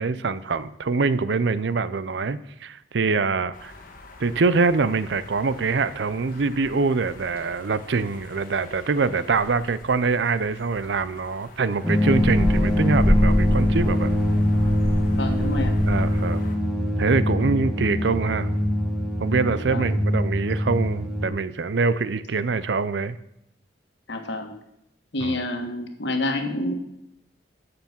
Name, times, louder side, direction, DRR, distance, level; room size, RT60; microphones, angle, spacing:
voice 1, 0.0-3.7 4.2-14.1 15.9-16.4 17.0-18.5 19.2-23.2 25.2-25.4, right 4 dB, 75° right, 15 dB, 0.5 m, -24 dB
sound 1, 3.5-16.5, equal, 45° left, 1.4 m, -30 dB
sound 2, 11.8-21.3, left 1 dB, ahead, 1.4 m, -23 dB
voice 2, 15.1-15.7 19.7-19.9 24.1-24.5 25.1-26.7, left 1 dB, 70° left, 5 dB, 1.5 m, -28 dB
9.4 x 6.8 x 7.2 m, 0.81 s
head